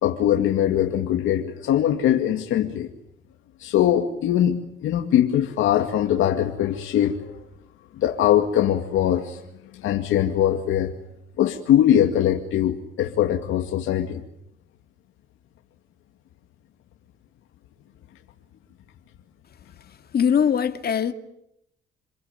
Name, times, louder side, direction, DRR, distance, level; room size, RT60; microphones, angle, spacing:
voice 1, 0.0-2.9 3.6-7.4 8.0-9.4 9.7-10.9 11.4-14.2, left 11 dB, 85° left, 2.2 m, -21 dB
voice 2, 20.1-21.1, left 7 dB, 50° left, 2.4 m, -21 dB
28.0 x 23.0 x 9.2 m
cardioid pair, 90°, 20 cm